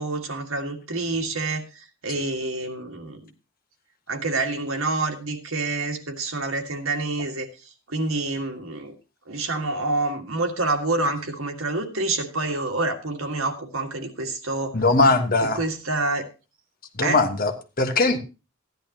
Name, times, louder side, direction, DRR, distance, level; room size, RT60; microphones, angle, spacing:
voice 1, 0.0-3.2 4.1-7.5 7.9-8.9 9.3-14.8 15.5-16.2 17.0-17.2, right 2 dB, 90° right, 4 dB, 1.8 m, -27 dB
voice 2, 14.7-15.6 17.0-18.2, left 3 dB, 45° left, 6 dB, 1.3 m, -20 dB
14.0 x 10.5 x 2.9 m, 0.30 s
head